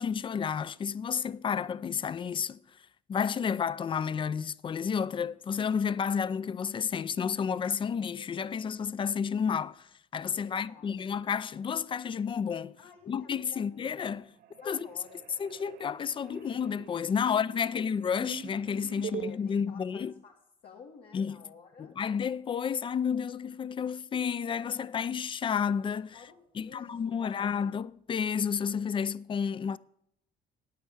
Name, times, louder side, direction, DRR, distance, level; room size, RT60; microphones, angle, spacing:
voice 1, 0.0-2.6 3.1-9.9 10.1-12.8 13.1-14.2 14.7-14.9 15.4-20.1 21.1-21.4 22.0-26.2 26.6-29.8, left 7 dB, 30° left, 0.4 m, -31 dB
voice 2, 10.4-11.2 12.8-13.8 14.6-15.3 17.6-17.9 18.9-22.0 26.1-27.5, left 5 dB, 70° left, 2.0 m, -53 dB
sound 1, 13.5-13.9 14.1-19.3, right 9 dB, 70° right, 0.6 m, -44 dB
8.9 x 8.6 x 7.2 m
cardioid pair, 110°, 17 cm